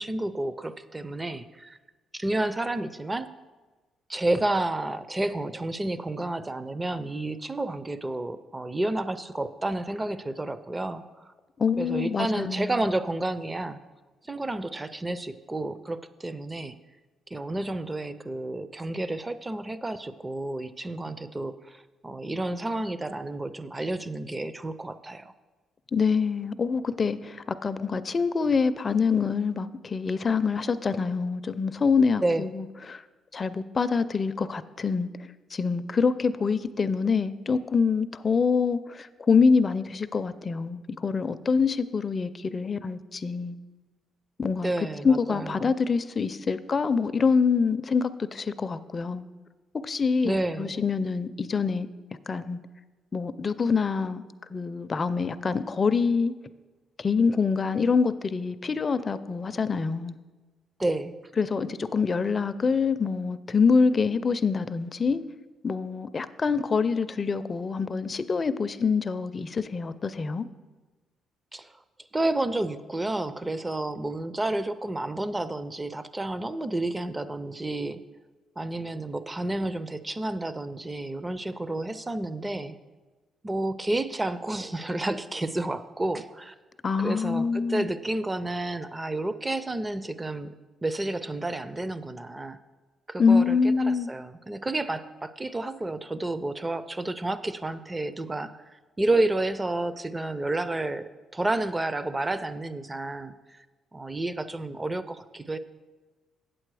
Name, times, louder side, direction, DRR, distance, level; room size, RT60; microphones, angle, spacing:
voice 1, 0.0-1.8 2.1-3.3 4.1-11.3 11.8-13.8 14.2-16.8 17.3-25.3 32.2-32.4 44.6-45.7 50.2-50.8 60.8-61.2 71.5-71.7 72.1-78.0 78.6-82.8 83.4-86.5 87.0-90.5 90.8-92.6 93.1-103.6 103.9-105.6, right 2 dB, 20° right, 14 dB, 0.5 m, -30 dB
voice 2, 11.6-12.8 25.9-33.0 33.3-43.6 44.4-44.7 45.0-49.2 49.8-51.9 52.3-52.6 53.1-54.2 54.5-56.3 57.0-60.2 61.4-65.2 65.6-70.5 86.8-87.9 93.2-94.1, left 5 dB, 35° left, 13 dB, 0.4 m, -25 dB
8.4 x 7.6 x 4.8 m, 1.3 s
cardioid pair, 90°, 0 cm